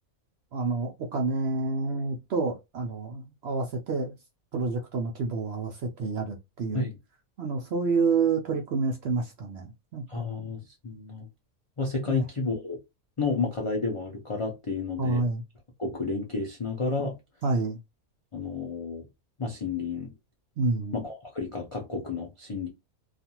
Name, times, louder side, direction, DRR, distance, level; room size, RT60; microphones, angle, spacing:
voice 1, 0.5-4.1 4.5-6.9 7.4-10.3 12.1-12.2 15.0-15.4 17.4-17.8 20.6-21.0, right 4 dB, 65° right, 0.6 m, -28 dB
voice 2, 10.1-11.3 11.8-12.8 13.2-15.2 15.8-17.1 18.3-19.0 19.4-20.1 20.9-22.7, left 3 dB, 55° left, 0.3 m, -31 dB
2.4 x 2.4 x 2.8 m
omnidirectional pair, 1.5 m